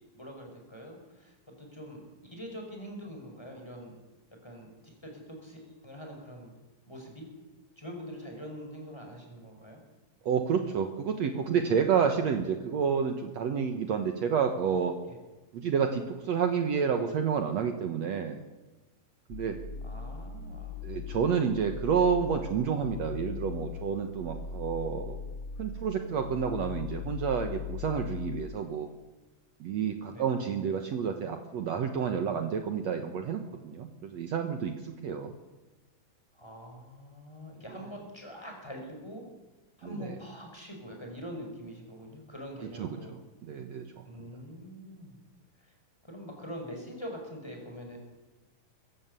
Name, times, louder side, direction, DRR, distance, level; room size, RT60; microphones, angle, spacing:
voice 1, 0.2-4.0 4.4-4.7 5.0-6.5 6.9-7.3 7.8-9.8 15.1-15.2 19.8-20.8 30.1-30.2 36.3-39.2 39.8-43.1 44.0-45.1 45.6-45.7 46.1-48.0, equal, 5° left, 1 dB, 5.5 m, -44 dB
voice 2, 10.2-15.0 15.5-18.4 19.3-19.6 20.8-25.2 25.6-28.9 29.6-35.3 39.8-40.2 42.8-43.2 43.4-44.0, right 7 dB, 60° right, 6 dB, 2.2 m, -29 dB
sound 1, 19.3-28.4, left 6 dB, 85° left, 0.7 m, -40 dB
22.0 x 15.0 x 8.3 m, 1.2 s
omnidirectional pair, 3.9 m